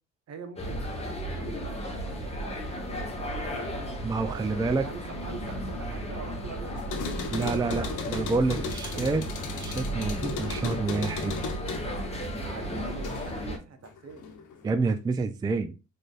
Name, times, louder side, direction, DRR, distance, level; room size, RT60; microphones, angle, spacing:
voice 1, 0.3-3.9 4.2-8.0 8.3-9.4 12.4-14.3, right 5 dB, 60° right, 0.9 m, -44 dB
sound 1, 0.6-13.6, right 1 dB, 20° left, 1.1 m, -35 dB
sound 2, 2.4-11.7, left 5 dB, 55° left, 1.0 m, -49 dB
voice 2, 4.0-4.8 7.3-9.3 9.6-11.4 14.6-15.8, right 3 dB, 15° right, 0.3 m, -28 dB
sound 3, 6.8-13.5 13.8-14.7, left 5 dB, 80° left, 0.9 m, -37 dB
4.1 x 3.3 x 2.4 m
cardioid pair, 90°, 30 cm